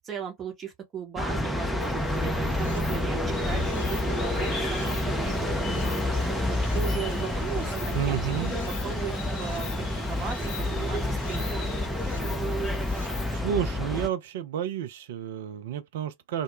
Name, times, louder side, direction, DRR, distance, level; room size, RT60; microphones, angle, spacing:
voice 1, 0.0-6.0 6.5-9.8 10.1-11.7, right 8 dB, 25° right, 0.8 m, -37 dB
sound 1, 1.2-14.1, left 1 dB, 5° left, 0.5 m, -29 dB
Stream, 1.8-13.4, left 5 dB, 70° left, 0.5 m, -45 dB
sound 2, 3.3-11.9, left 3 dB, 25° left, 0.8 m, -41 dB
voice 2, 7.9-8.5 13.3-16.4, right 10 dB, 55° right, 0.4 m, -30 dB
2.1 x 2.0 x 2.9 m
figure-of-eight pair, 90°, 0 cm